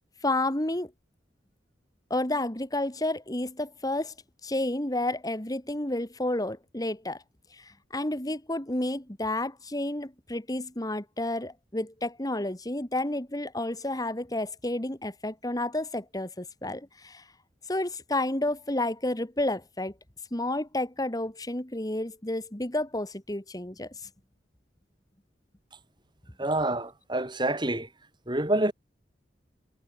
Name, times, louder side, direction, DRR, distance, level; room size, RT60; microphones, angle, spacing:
voice 1, 0.2-0.9 2.1-4.1 4.4-7.2 7.5-17.2 17.7-19.9 20.3-23.9, left 1 dB, 20° left, 2.1 m, -31 dB
voice 2, 26.4-27.9 28.3-28.7, right 1 dB, 25° right, 3.5 m, -27 dB
head